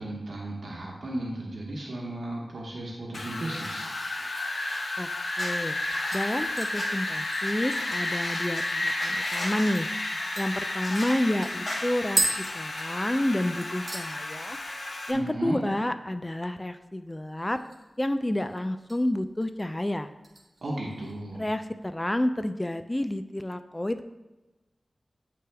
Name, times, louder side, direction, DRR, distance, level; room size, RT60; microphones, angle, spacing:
voice 1, 0.0-3.8 15.1-15.6 20.6-21.4, right 1 dB, 85° right, -3 dB, 1.0 m, -34 dB
Wind, 3.1-15.1, left 2 dB, 70° left, 0.8 m, -32 dB
sound 1, 3.4-4.8 5.4-6.8 7.4-7.5 7.8-8.6 9.0-9.7 10.8-11.2 11.7-11.8, left 1 dB, 50° left, 1.8 m, -39 dB
voice 2, 5.4-5.8 6.1-9.9 10.4-12.2 12.5-14.6 15.1-17.6 18.0-20.1 21.4-24.1, left 1 dB, 20° left, 10 dB, 0.3 m, -29 dB
sound 2, 6.1-8.9 9.3-9.4 9.7-9.9 10.4-13.4 13.6-14.1 14.5-14.9 15.1-15.2 17.3-18.0 18.3-19.0 19.4-19.7 20.2-21.2 21.5-21.6, right 2 dB, 55° right, 1.0 m, -35 dB
9.5 x 3.4 x 3.3 m, 1.1 s
wide cardioid pair, 60°, 0 cm